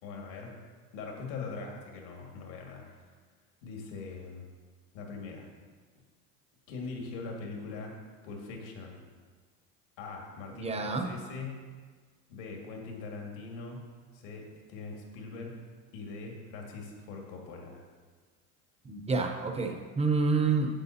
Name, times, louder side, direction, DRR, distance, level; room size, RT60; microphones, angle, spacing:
voice 1, 0.0-0.5 0.9-3.1 3.6-4.5 4.9-5.5 6.7-7.9 8.2-9.0 10.0-11.6 12.3-13.9 14.1-15.6 15.9-17.8, left 4 dB, 70° left, 0 dB, 2.0 m, -41 dB
voice 2, 10.5-11.1 18.8-20.7, right 4 dB, 15° right, 4 dB, 0.8 m, -28 dB
9.7 x 7.5 x 2.8 m, 1.5 s
supercardioid pair, 120°, 41 cm